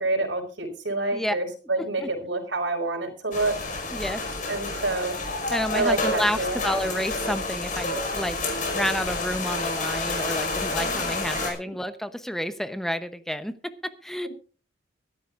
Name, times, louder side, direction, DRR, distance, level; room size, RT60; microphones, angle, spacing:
voice 1, 0.0-3.6 4.5-5.1 5.7-6.6 10.8-11.5, right 2 dB, 80° right, 1 dB, 4.8 m, -28 dB
voice 2, 1.8-2.1 3.9-4.3 5.5-8.4 8.7-14.3, equal, ahead, 11 dB, 0.8 m, -30 dB
sound 1, 3.3-11.5, left 2 dB, 45° left, 5.3 m, -29 dB
23.0 x 12.5 x 2.5 m, 0.38 s
head